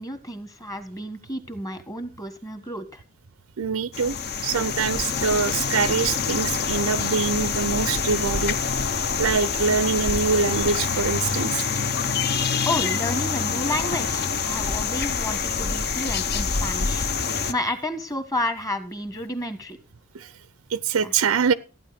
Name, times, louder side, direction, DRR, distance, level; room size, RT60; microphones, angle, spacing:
voice 1, 0.0-3.0 12.6-19.8 21.0-21.1, left 1 dB, 15° left, 1.4 m, -31 dB
voice 2, 3.6-4.2 4.4-8.6 9.2-11.7 20.1-20.3 20.7-21.5, right 5 dB, 80° right, 0.6 m, -24 dB
sound 1, 3.9-17.5, left 5 dB, 50° left, 0.8 m, -26 dB
14.5 x 9.3 x 5.1 m
head